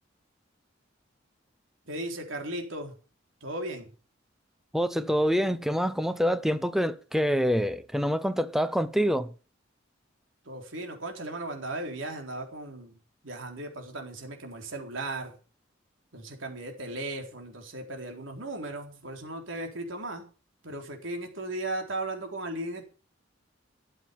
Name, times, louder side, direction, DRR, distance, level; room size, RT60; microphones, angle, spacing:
voice 1, 1.9-2.9 3.4-3.9 10.5-12.9 13.2-15.3 16.1-20.2 20.6-22.8, right 2 dB, 80° right, 4.0 m, -36 dB
voice 2, 4.7-9.3, equal, ahead, 0.9 m, -26 dB
13.0 x 7.8 x 7.1 m
head